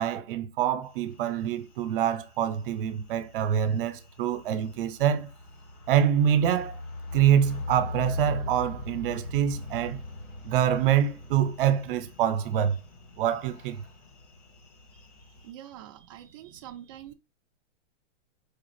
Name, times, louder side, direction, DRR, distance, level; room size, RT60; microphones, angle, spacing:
voice 1, 0.0-5.3 5.9-6.8 7.1-10.0 10.4-12.8 13.2-13.8, right 9 dB, 50° right, 0.7 m, -25 dB
sound 1, 0.9-15.5, left 2 dB, 80° left, 2.0 m, -41 dB
voice 2, 15.4-17.1, right 11 dB, 30° right, 0.4 m, -45 dB
4.7 x 2.4 x 3.2 m
hypercardioid pair, 135°, 36 cm